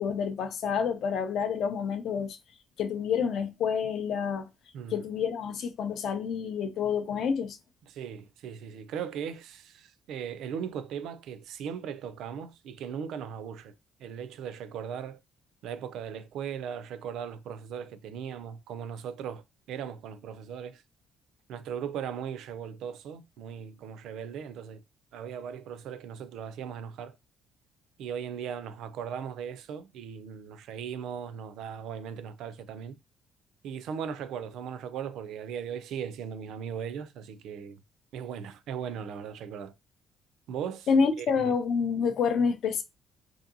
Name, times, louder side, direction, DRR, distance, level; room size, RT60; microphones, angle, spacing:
voice 1, 0.0-2.4 2.8-4.5 4.9-7.6 40.9-42.8, left 6 dB, 50° left, 0.4 m, -28 dB
voice 2, 7.8-13.7 14.0-15.2 15.6-19.4 19.7-20.8 21.5-24.8 25.1-27.1 28.0-33.0 33.6-37.8 38.1-39.7 40.5-40.9 41.2-41.3, right 8 dB, 70° right, 0.3 m, -38 dB
2.7 x 2.6 x 2.5 m
cardioid pair, 170°, 0 cm